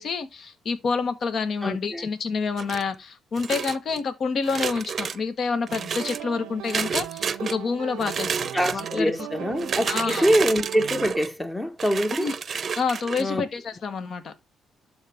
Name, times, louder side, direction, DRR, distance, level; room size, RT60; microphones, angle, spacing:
voice 1, 0.0-9.1 9.9-10.3 12.1-12.3 12.8-14.3, left 5 dB, 55° left, 1.3 m, -28 dB
voice 2, 1.6-2.1 8.5-12.3 13.2-13.5, equal, 10° left, 1.1 m, -24 dB
sound 1, 2.6-3.0 3.4-4.0 4.4-5.2 5.7-6.2 6.7-7.6 8.0-9.0 9.6-11.3 11.8-13.2, right 6 dB, 45° right, 0.6 m, -30 dB
sound 2, 5.7-11.1, right 12 dB, 85° right, 0.6 m, -39 dB
12.0 x 4.3 x 3.5 m
cardioid pair, 90°, 0 cm